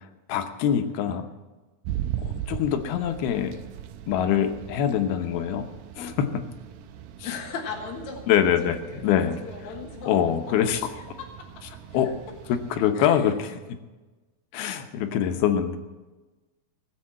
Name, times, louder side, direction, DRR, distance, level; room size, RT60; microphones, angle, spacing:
voice 1, 0.3-1.3 2.2-3.6 4.1-5.7 6.0-6.4 8.3-8.8 9.0-9.4 10.1-10.9 11.9-12.1 12.7-13.6 14.5-15.8, left 9 dB, 90° left, 7 dB, 2.9 m, -24 dB
sound 1, 1.8-12.9, right 11 dB, 80° right, 2.2 m, -39 dB
voice 2, 7.2-8.3 8.6-10.2 10.8-11.3 11.7-12.1 12.5-12.6 12.9-13.3, left 5 dB, 60° left, 0 dB, 2.6 m, -38 dB
18.5 x 7.7 x 7.5 m, 1.2 s
omnidirectional pair, 4.3 m